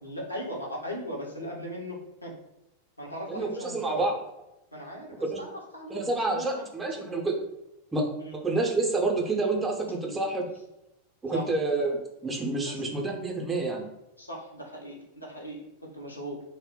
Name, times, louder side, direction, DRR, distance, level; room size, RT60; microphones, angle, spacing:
voice 1, 0.0-2.3 3.0-4.1 4.7-7.0 8.2-8.4 11.3-11.5 12.6-12.9 13.4-13.5 14.2-16.4, equal, 85° left, -3 dB, 0.7 m, -39 dB
voice 2, 3.3-4.2 5.2-5.4 5.9-7.4 7.9-10.5 11.2-13.8, right 2 dB, 15° right, 1 dB, 0.5 m, -28 dB
2.1 x 2.1 x 3.5 m, 0.88 s
figure-of-eight pair, 90°, 0 cm